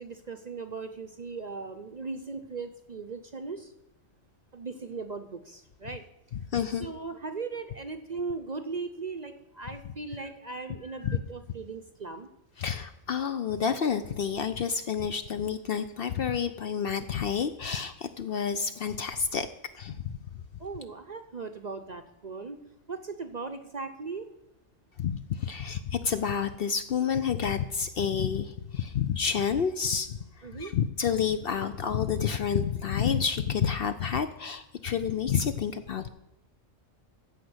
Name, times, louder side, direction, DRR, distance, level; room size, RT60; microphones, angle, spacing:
voice 1, 0.0-3.7 4.5-6.0 6.7-12.3 20.6-22.6 22.9-24.3 30.4-30.7, right 4 dB, 45° right, 7 dB, 0.6 m, -38 dB
voice 2, 6.5-6.9 11.0-11.2 12.6-19.5 19.8-20.2 25.0-30.2 30.6-36.1, left 7 dB, 60° left, 10 dB, 0.7 m, -29 dB
14.5 x 5.1 x 7.9 m, 0.91 s
omnidirectional pair, 1.3 m